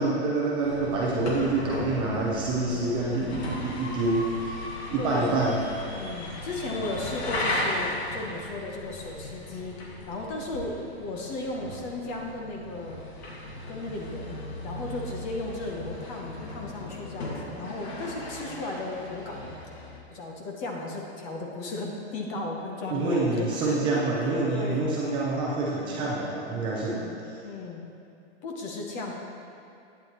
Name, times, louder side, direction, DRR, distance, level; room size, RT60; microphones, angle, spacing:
voice 1, 0.0-4.6 4.9-5.6 22.9-27.0, right 2 dB, 15° right, -5 dB, 0.5 m, -27 dB
sound 1, 0.6-20.0, left 1 dB, 65° left, 1.9 m, -36 dB
voice 2, 2.3-2.8 3.1-3.5 5.0-5.4 5.9-9.8 10.1-13.0 13.7-19.5 20.1-24.8 25.8-26.1 26.7-27.8 28.4-29.1, left 2 dB, 20° left, 0 dB, 0.7 m, -35 dB
11.0 x 9.1 x 2.9 m, 2.6 s
supercardioid pair, 165°, 34 cm